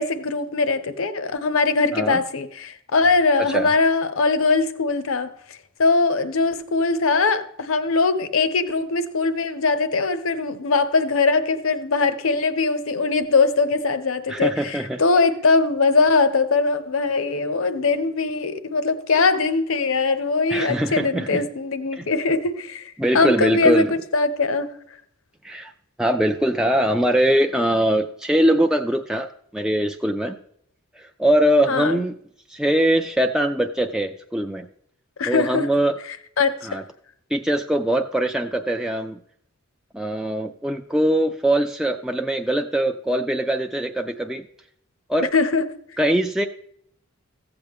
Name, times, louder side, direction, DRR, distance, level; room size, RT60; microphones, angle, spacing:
voice 1, 0.0-5.3 5.8-23.8 24.1-24.7 31.7-32.0 35.2-35.7 36.4-36.8 45.3-45.6, left 4 dB, 70° left, 0.7 m, -21 dB
voice 2, 3.4-3.7 14.3-15.0 20.5-21.5 21.9-22.1 23.0-23.9 25.4-25.7 26.0-30.4 31.0-32.1 32.5-34.7 35.3-36.0 36.6-36.8 37.3-39.2 39.9-44.5 45.1-45.3 46.0-46.5, right 1 dB, 5° right, 0.3 m, -22 dB
14.5 x 7.8 x 3.6 m
head